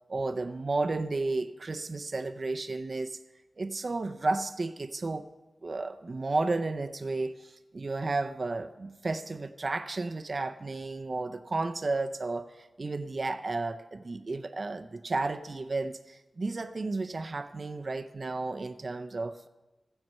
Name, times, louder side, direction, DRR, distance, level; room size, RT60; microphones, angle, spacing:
voice 1, 0.1-3.2 3.6-5.3 5.6-19.5, right 3 dB, 55° right, 9 dB, 0.5 m, -33 dB
15.0 x 7.8 x 5.4 m, 1.1 s
wide cardioid pair, 70°, 0 cm